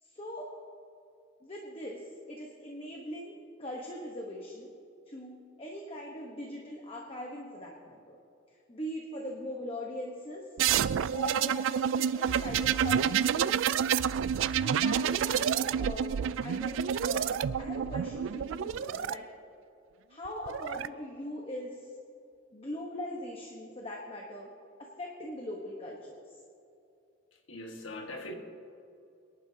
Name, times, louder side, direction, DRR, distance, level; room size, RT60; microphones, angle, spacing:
voice 1, 0.0-0.5 1.4-4.7 5.1-8.2 8.5-10.5 11.1-13.9 14.5-19.3 20.1-22.0 22.5-24.5 24.8-26.4, left 1 dB, 30° left, -1 dB, 1.1 m, -41 dB
sound 1, 10.6-19.1 20.3-20.9, right 8 dB, 75° right, 0.3 m, -29 dB
voice 2, 27.5-28.3, left 1 dB, 80° left, 3 dB, 1.6 m, -41 dB
23.0 x 11.0 x 2.8 m, 2.6 s
head